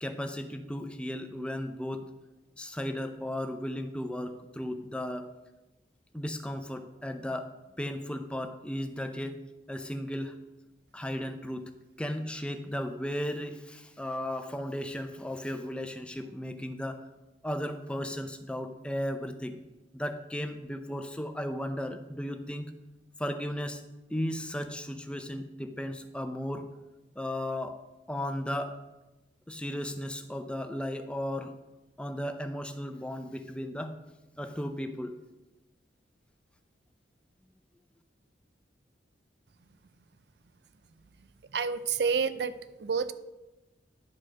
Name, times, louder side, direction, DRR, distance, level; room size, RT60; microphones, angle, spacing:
voice 1, 0.0-2.1 2.6-5.3 6.1-9.4 9.7-10.4 10.9-11.7 12.0-17.0 17.4-19.6 19.9-22.7 23.2-23.8 24.1-26.7 27.2-27.8 28.1-28.8 29.5-31.5 32.0-33.9 34.4-35.2, left 1 dB, 5° left, 7 dB, 0.6 m, -35 dB
voice 2, 41.5-43.1, right 5 dB, 65° right, 13 dB, 0.5 m, -29 dB
10.5 x 4.8 x 6.1 m, 1.0 s
head